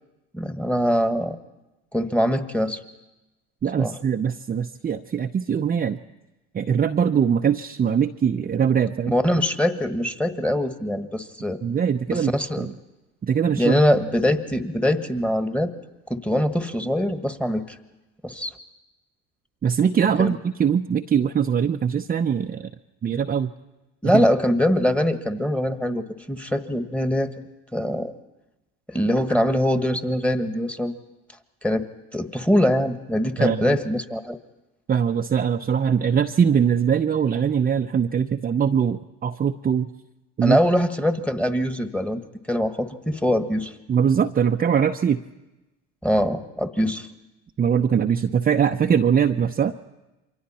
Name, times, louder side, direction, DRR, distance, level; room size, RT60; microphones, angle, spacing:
voice 1, 0.3-1.4 1.9-2.8 3.8-3.9 9.1-11.6 12.1-12.7 13.5-15.7 16.1-17.8 18.2-18.5 20.2-20.3 24.0-27.3 27.7-28.1 28.9-30.9 31.6-31.9 32.1-34.4 40.4-42.2 42.5-43.7 46.0-47.1, equal, 5° left, 9 dB, 1.5 m, -23 dB
voice 2, 3.6-6.0 6.5-9.2 11.6-12.7 13.2-13.7 19.6-22.7 23.0-23.5 33.4-33.7 34.9-39.9 40.4-40.6 43.9-45.2 47.6-49.7, right 7 dB, 25° right, 4 dB, 0.7 m, -22 dB
28.0 x 23.5 x 4.3 m, 1.0 s
hypercardioid pair, 75°, 36 cm